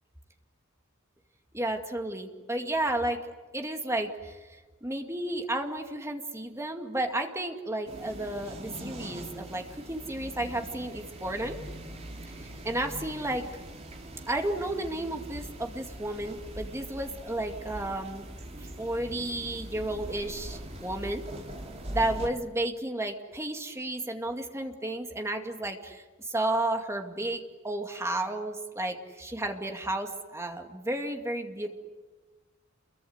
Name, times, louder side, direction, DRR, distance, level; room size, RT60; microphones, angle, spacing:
voice 1, 1.5-3.2 3.5-4.4 4.8-11.6 12.6-13.5 14.3-18.3 18.8-21.2 21.9-31.7, right 1 dB, 15° right, 4 dB, 2.3 m, -32 dB
sound 1, 7.9-22.3, right 1 dB, 30° right, 3.6 m, -42 dB
28.5 x 23.0 x 8.1 m, 1.3 s
head